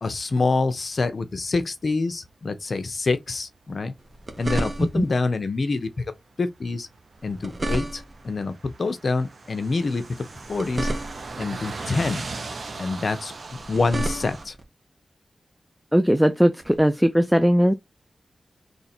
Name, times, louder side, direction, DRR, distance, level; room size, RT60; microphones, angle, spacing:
voice 1, 0.0-3.9 4.4-6.1 6.4-6.9 7.2-10.9 11.4-12.3 12.8-13.3 13.7-14.5, left 3 dB, 55° left, 0.7 m, -26 dB
sound 1, 1.2-3.0 3.3-3.6 3.9-4.0 4.4-4.7 5.0-6.1 6.4-14.5, right 3 dB, 60° right, 0.6 m, -39 dB
sound 2, 4.0-5.2 7.1-8.3 10.3-11.5 13.5-14.6 16.6-16.8, right 1 dB, 30° right, 0.9 m, -31 dB
voice 2, 15.9-17.7, equal, ahead, 0.4 m, -19 dB
3.2 x 2.7 x 4.3 m
wide cardioid pair, 105°, 0 cm